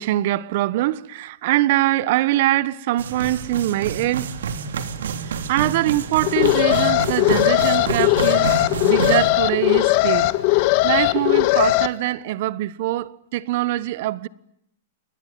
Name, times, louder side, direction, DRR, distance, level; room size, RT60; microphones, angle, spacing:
voice 1, 0.0-4.3 5.3-14.3, right 15 dB, 50° right, 1.2 m, -23 dB
sound 1, 3.0-9.3, right 6 dB, 85° right, 3.3 m, -28 dB
Alarm, 6.2-11.9, left 19 dB, 45° left, 1.6 m, -19 dB
28.5 x 21.5 x 9.3 m
hypercardioid pair, 150°, 0 cm